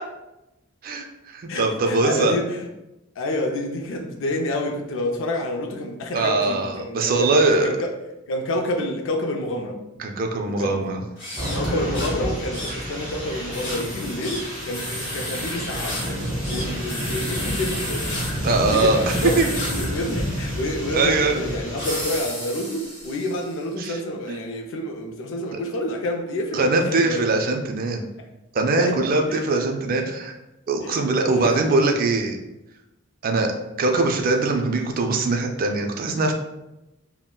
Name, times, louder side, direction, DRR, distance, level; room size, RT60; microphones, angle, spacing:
voice 1, 0.8-2.3 6.1-7.7 10.0-11.0 18.4-19.0 19.4-19.5 20.9-21.4 23.8-24.0 24.3-24.4 26.5-28.0 28.5-30.4 30.7-32.4 33.2-33.5 33.8-36.3, right 3 dB, 45° right, 3 dB, 0.3 m, -22 dB
voice 2, 1.5-2.7 3.2-8.0 8.3-9.8 10.5-10.9 11.5-16.2 16.5-18.2 18.5-27.3 28.8-29.0 29.3-29.4 30.8-31.0 31.4-31.5, left 1 dB, 65° left, 2 dB, 0.4 m, -28 dB
sound 1, 11.1-23.6, left 1 dB, 40° left, 1.4 m, -34 dB
sound 2, 11.4-22.2, equal, 5° right, 1.1 m, -30 dB
3.6 x 2.1 x 2.2 m, 0.94 s
head